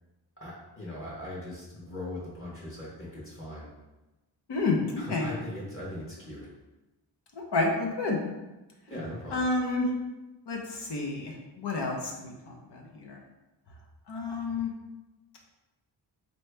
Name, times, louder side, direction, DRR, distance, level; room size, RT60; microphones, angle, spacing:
voice 1, 0.4-3.7 5.0-6.5 8.9-9.4, left 1 dB, 30° left, -6 dB, 1.3 m, -39 dB
voice 2, 4.5-5.3 7.5-8.2 9.3-9.9 10.5-13.2 14.1-14.7, left 3 dB, 70° left, 0 dB, 0.9 m, -30 dB
4.1 x 3.1 x 3.4 m, 1.1 s
wide cardioid pair, 110°, 42 cm